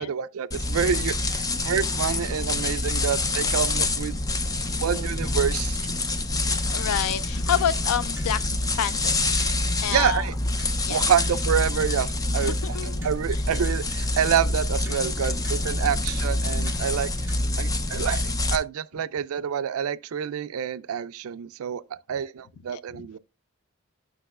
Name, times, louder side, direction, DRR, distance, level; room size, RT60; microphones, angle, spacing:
voice 1, 0.0-4.2 4.8-6.0 9.9-10.3 10.9-12.5 12.8-17.1 17.6-21.8 22.1-23.2, right 8 dB, 75° right, 0.4 m, -27 dB
sound 1, 0.5-18.6, left 2 dB, 15° left, 0.4 m, -26 dB
Clock, 6.4-17.3, right 2 dB, 10° right, 2.0 m, -49 dB
voice 2, 6.6-9.2 9.5-10.3 10.9-11.0 12.4-13.4 22.7-23.1, left 9 dB, 85° left, 0.4 m, -29 dB
9.9 x 6.0 x 2.3 m
head